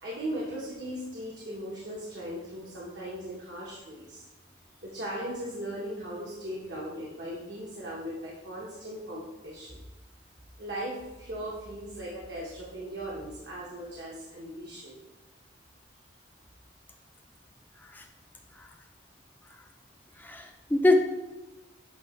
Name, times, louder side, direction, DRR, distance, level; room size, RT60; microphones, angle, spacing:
voice 1, 0.0-4.2 4.8-9.8 10.6-15.0, right 1 dB, 60° right, -5 dB, 1.1 m, -38 dB
voice 2, 20.2-21.0, left 2 dB, 10° left, 4 dB, 0.4 m, -24 dB
8.0 x 2.8 x 4.4 m, 1.1 s
head